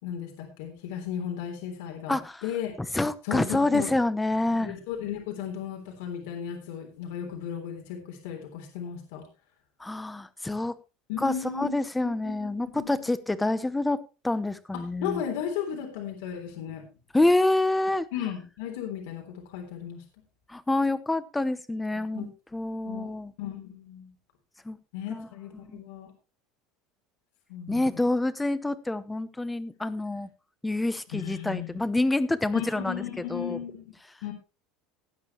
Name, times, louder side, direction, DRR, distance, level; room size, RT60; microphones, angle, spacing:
voice 1, 0.0-2.7 3.2-3.9 4.5-9.3 11.1-11.7 12.2-12.5 12.7-13.1 14.7-16.8 18.1-20.0 22.0-22.3 22.9-23.1 23.4-24.1 24.9-26.1 27.5-28.0 31.1-31.8 32.5-33.9 34.2-34.3, left 9 dB, 80° left, 3 dB, 3.6 m, -35 dB
voice 2, 2.1-2.4 2.9-4.7 9.8-10.7 11.2-14.0 14.2-15.2 17.1-18.1 20.5-23.3 24.6-24.8 25.1-25.3 25.5-25.8 27.7-30.3 30.6-33.0 33.3-33.6, left 2 dB, 5° left, 14 dB, 0.8 m, -27 dB
18.5 x 9.0 x 3.1 m, 0.30 s
cardioid pair, 165°, 0 cm